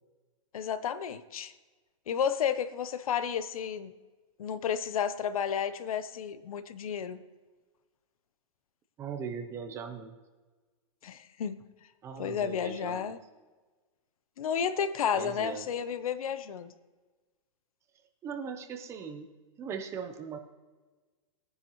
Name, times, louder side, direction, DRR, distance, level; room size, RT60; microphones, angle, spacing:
voice 1, 0.5-1.5 2.1-3.9 4.4-7.2 11.0-11.6 12.2-13.2 14.4-16.7, left 8 dB, 80° left, 13 dB, 0.9 m, -32 dB
voice 2, 9.0-10.2 12.0-13.1 15.1-15.6 18.2-19.3 19.6-20.4, right 6 dB, 15° right, 6 dB, 0.7 m, -39 dB
20.0 x 9.8 x 3.1 m, 1.3 s
supercardioid pair, 165°, 18 cm